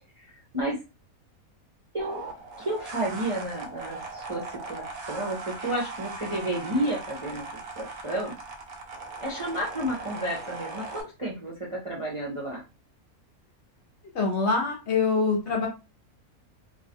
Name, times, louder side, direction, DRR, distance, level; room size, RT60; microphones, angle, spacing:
sound 1, 2.0-11.0, right 3 dB, 80° right, 1.1 m, -39 dB
voice 1, 2.6-7.5 7.8-8.3 9.2-12.6, right 1 dB, 30° right, -4 dB, 0.6 m, -31 dB
voice 2, 14.1-15.7, left 4 dB, 55° left, 0 dB, 0.9 m, -24 dB
3.1 x 2.4 x 2.5 m, 0.28 s
omnidirectional pair, 1.6 m